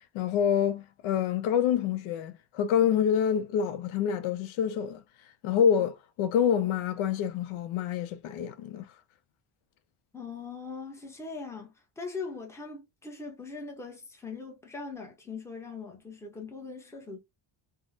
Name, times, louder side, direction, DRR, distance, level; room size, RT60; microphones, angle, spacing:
voice 1, 0.1-5.0 5.4-8.9, left 8 dB, 75° left, 0.6 m, -27 dB
voice 2, 10.1-17.2, left 4 dB, 5° left, 0.6 m, -41 dB
3.4 x 2.0 x 2.6 m
cardioid pair, 140°, 49 cm